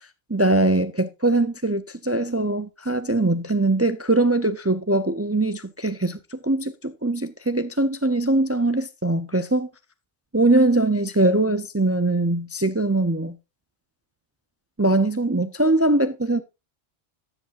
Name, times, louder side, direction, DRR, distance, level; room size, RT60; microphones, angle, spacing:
voice 1, 0.3-9.7 10.3-13.4 14.8-16.4, right 2 dB, 25° right, 0.3 m, -22 dB
13.0 x 8.1 x 2.5 m
omnidirectional pair, 1.2 m